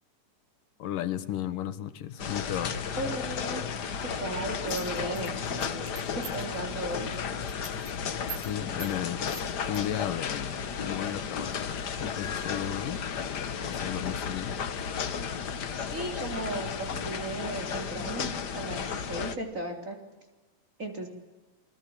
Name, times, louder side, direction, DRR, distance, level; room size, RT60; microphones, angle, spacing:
voice 1, 0.8-2.8 8.4-9.2 9.7-14.6, left 11 dB, 90° left, 12 dB, 3.1 m, -34 dB
sound 1, 2.2-19.4, left 7 dB, 60° left, 1.1 m, -34 dB
voice 2, 3.0-3.6 4.0-5.9 6.1-7.1 15.8-20.0 20.8-21.1, right 2 dB, 25° right, 4 dB, 3.8 m, -36 dB
sound 2, 4.7-6.5 6.9-7.2 7.4-7.9 8.3-8.5 8.8-8.9 9.3-9.8, right 9 dB, 60° right, 2.9 m, -42 dB
28.0 x 22.0 x 8.7 m, 1.1 s
omnidirectional pair, 3.7 m